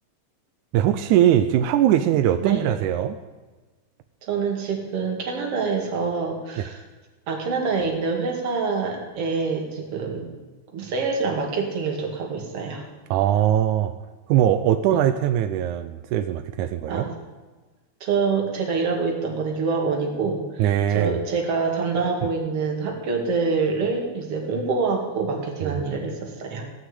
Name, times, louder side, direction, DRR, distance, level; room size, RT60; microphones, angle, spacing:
voice 1, 0.7-3.2 13.1-13.9 14.3-17.1 20.6-21.2 25.6-25.8, right 11 dB, 85° right, 9 dB, 2.1 m, -21 dB
voice 2, 4.2-6.8 7.3-10.3 10.7-12.8 14.9-15.0 16.9-17.1 18.0-20.6 20.9-26.6, right 4 dB, 55° right, 1 dB, 3.0 m, -26 dB
17.0 x 6.1 x 9.7 m, 1.3 s
omnidirectional pair, 3.4 m